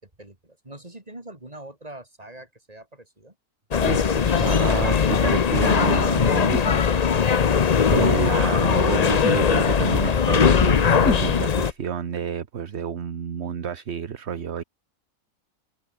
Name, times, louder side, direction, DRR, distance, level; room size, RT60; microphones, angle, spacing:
voice 1, 0.0-3.3, right 1 dB, 25° right, 4.6 m, -43 dB
sound 1, 3.7-11.7, left 6 dB, 40° left, 0.6 m, -20 dB
voice 2, 3.8-6.6 7.4-14.6, right 8 dB, 50° right, 1.3 m, -29 dB
sound 2, 5.1-5.3 6.5-7.2 7.8-8.0 9.2-9.5 11.0-11.3, left 3 dB, 90° left, 4.0 m, -28 dB
omnidirectional pair, 1.5 m